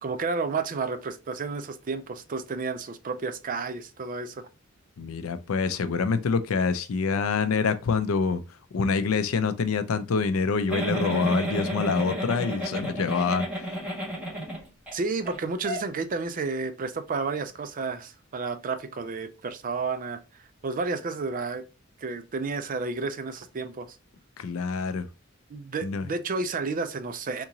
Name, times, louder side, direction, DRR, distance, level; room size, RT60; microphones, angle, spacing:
voice 1, 0.0-4.4 14.9-20.2 20.6-21.6 22.0-24.0 25.5-27.4, right 4 dB, 40° right, 0.4 m, -31 dB
voice 2, 5.0-8.4 8.7-13.5 24.4-25.0 25.8-26.1, left 5 dB, 80° left, 0.4 m, -26 dB
Giggle, 10.7-14.9 15.3-15.4 15.6-15.8, right 1 dB, 5° right, 1.7 m, -31 dB
3.6 x 2.9 x 2.7 m
head